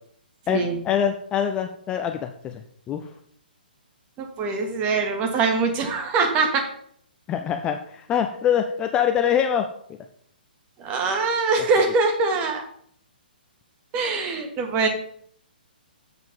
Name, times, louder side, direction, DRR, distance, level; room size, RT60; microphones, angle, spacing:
voice 1, 0.5-3.1 7.3-9.7 11.8-11.9, left 9 dB, 15° left, 6 dB, 0.5 m, -24 dB
voice 2, 4.2-6.6 10.8-12.6 13.9-14.9, right 4 dB, 25° right, 4 dB, 1.7 m, -23 dB
7.6 x 5.8 x 5.4 m, 0.63 s
figure-of-eight pair, 125°, 5 cm